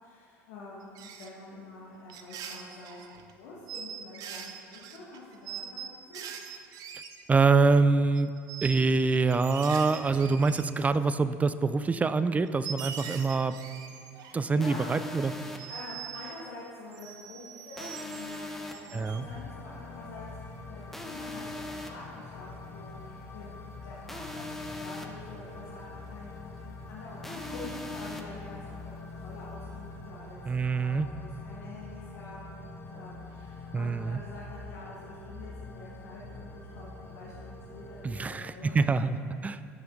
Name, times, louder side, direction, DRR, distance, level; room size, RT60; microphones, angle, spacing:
voice 1, 0.0-6.2 14.1-14.9 15.7-20.3 20.7-38.8, left 2 dB, 75° left, -7 dB, 1.5 m, -46 dB
sound 1, 1.0-1.3 2.1-3.3 3.7-7.4 7.7-7.8 8.2-8.9 9.3-11.0 11.8-11.9 12.4-14.4 15.6-16.4 16.9-19.2, right 8 dB, 55° right, 0.7 m, -42 dB
voice 2, 7.3-8.3 8.6-13.6 14.3-15.3 18.9-19.3 30.5-31.1 33.7-34.2 38.0-39.2 39.4-39.6, right 4 dB, 20° right, 14 dB, 0.4 m, -25 dB
sound 2, 14.6-15.6 17.8-18.7 20.9-21.9 24.1-25.1 27.2-28.2, left 2 dB, 5° left, 0.9 m, -39 dB
sound 3, 19.0-38.1, left 3 dB, 30° left, 1.2 m, -45 dB
12.0 x 5.7 x 3.8 m, 2.4 s
hypercardioid pair, 70°, 8 cm